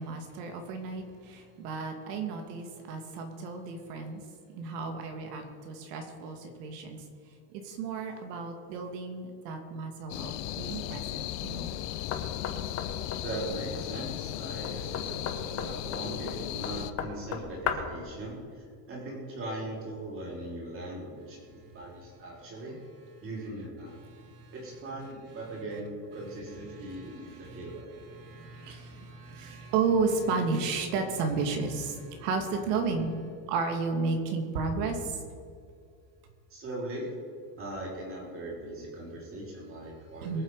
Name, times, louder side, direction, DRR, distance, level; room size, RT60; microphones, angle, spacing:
voice 1, 0.0-4.2 4.5-7.0 7.5-11.8 24.1-24.5 26.7-27.7 28.1-33.1 33.5-35.2 40.2-40.4, right 4 dB, 80° right, 4 dB, 2.6 m, -33 dB
sound 1, 10.1-16.9, left 13 dB, 90° left, 0.9 m, -36 dB
Knock, 12.1-18.0, left 7 dB, 35° left, 1.3 m, -37 dB
voice 2, 13.2-22.7 23.2-24.0 24.5-27.9 36.5-37.1 37.6-40.4, right 1 dB, 25° right, -3 dB, 4.3 m, -39 dB
23.0 x 8.0 x 5.0 m, 2.3 s
cardioid pair, 175°, 47 cm